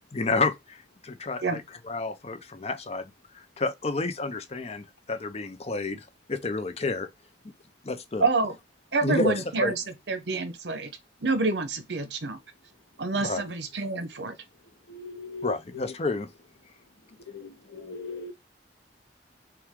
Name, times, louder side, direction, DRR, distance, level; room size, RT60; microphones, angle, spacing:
voice 1, 0.1-3.1 3.6-7.1 7.8-8.3 9.0-9.7 13.1-13.4 15.4-16.3, left 3 dB, 35° left, 0.6 m, -30 dB
voice 2, 8.2-8.5 8.9-9.7 10.1-10.9 11.2-12.4 13.0-14.3, right 3 dB, 75° right, 0.9 m, -27 dB
voice 3, 14.9-15.6 17.3-18.3, left 3 dB, 75° left, 0.8 m, -39 dB
5.7 x 2.3 x 3.7 m
head